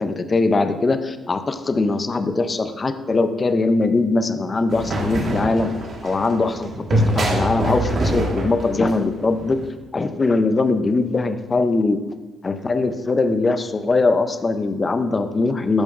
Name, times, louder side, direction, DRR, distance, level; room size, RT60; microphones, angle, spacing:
voice 1, 0.0-5.7 6.0-9.6 9.9-12.0 12.4-15.8, left 3 dB, 30° left, 9 dB, 0.5 m, -21 dB
sound 1, 4.7-9.6, right 1 dB, 50° right, 1.4 m, -24 dB
12.5 x 5.1 x 2.5 m, 1.2 s
cardioid pair, 90°, 0 cm